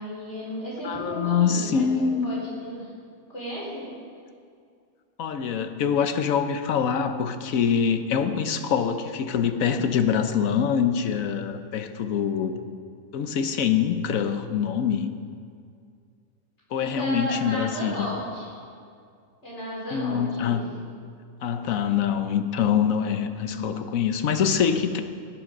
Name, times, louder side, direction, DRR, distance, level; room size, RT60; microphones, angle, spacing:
voice 1, 0.0-1.9 2.2-2.9 3.3-3.9 16.9-18.5 19.4-20.6 23.4-23.8, equal, 55° left, -6 dB, 4.5 m, -34 dB
voice 2, 0.8-2.3 5.2-12.6 13.1-15.1 16.7-18.1 19.9-20.7 21.4-25.0, left 7 dB, 80° left, 8 dB, 1.2 m, -24 dB
17.0 x 9.2 x 5.2 m, 2.3 s
omnidirectional pair, 1.4 m